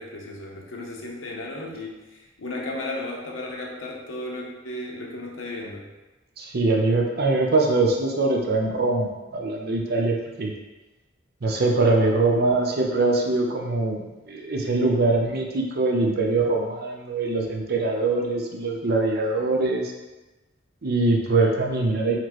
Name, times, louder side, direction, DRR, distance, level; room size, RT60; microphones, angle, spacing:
voice 1, 0.0-5.9, left 2 dB, 85° left, -1 dB, 0.8 m, -34 dB
voice 2, 6.4-10.5 11.4-19.9 20.8-22.2, right 2 dB, 55° right, 1 dB, 0.6 m, -23 dB
4.1 x 3.1 x 3.0 m, 1.1 s
head